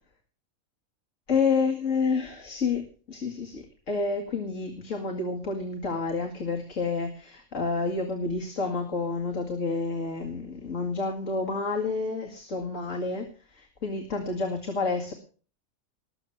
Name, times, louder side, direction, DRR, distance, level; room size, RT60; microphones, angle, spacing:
voice 1, 1.3-15.1, left 4 dB, 65° left, 2 dB, 2.5 m, -29 dB
20.0 x 7.1 x 7.2 m, 0.40 s
omnidirectional pair, 1.4 m